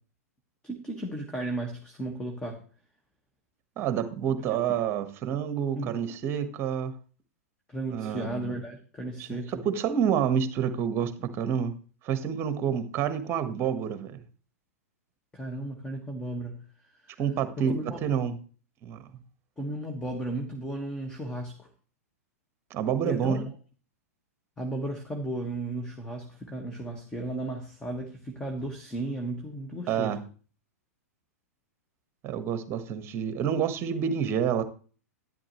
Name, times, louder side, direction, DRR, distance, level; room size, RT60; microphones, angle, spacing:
voice 1, 0.6-2.6 5.7-5.9 7.7-9.6 15.3-16.7 17.0-17.2 17.6-18.0 19.6-21.7 23.1-23.4 24.6-30.2, right 1 dB, 10° left, 3 dB, 1.6 m, -35 dB
voice 2, 3.8-6.9 7.9-8.5 9.2-9.3 9.6-11.8 12.0-14.2 17.2-18.4 18.8-19.0 22.7-23.4 29.9-30.2 32.2-34.6, right 8 dB, 30° right, 11 dB, 1.4 m, -28 dB
12.0 x 10.5 x 3.1 m, 0.39 s
figure-of-eight pair, 100°, 8 cm